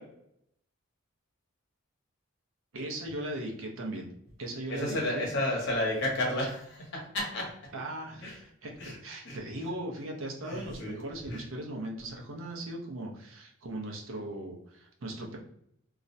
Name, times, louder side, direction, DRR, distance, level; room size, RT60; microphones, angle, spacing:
voice 1, 2.7-4.1 4.4-5.7 6.4-6.5 7.7-15.4, right 1 dB, 70° right, 0 dB, 0.6 m, -38 dB
voice 2, 4.7-7.5 8.2-8.3 8.8-8.9 9.3-9.4 10.5-11.0, left 1 dB, 55° left, -1 dB, 0.8 m, -31 dB
2.3 x 2.0 x 2.6 m, 0.72 s
head